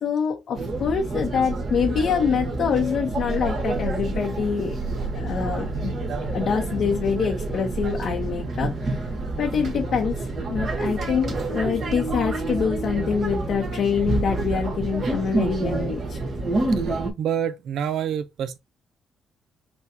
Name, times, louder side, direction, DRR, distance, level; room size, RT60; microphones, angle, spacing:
voice 1, 0.0-4.8 5.1-5.9 6.3-9.0 9.4-16.2, left 6 dB, 65° left, 0.8 m, -25 dB
sound 1, 0.6-17.1, right 2 dB, 50° right, 1.5 m, -28 dB
voice 2, 16.7-18.6, right 9 dB, 75° right, 0.6 m, -28 dB
6.1 x 2.3 x 2.7 m
cardioid pair, 90°, 0 cm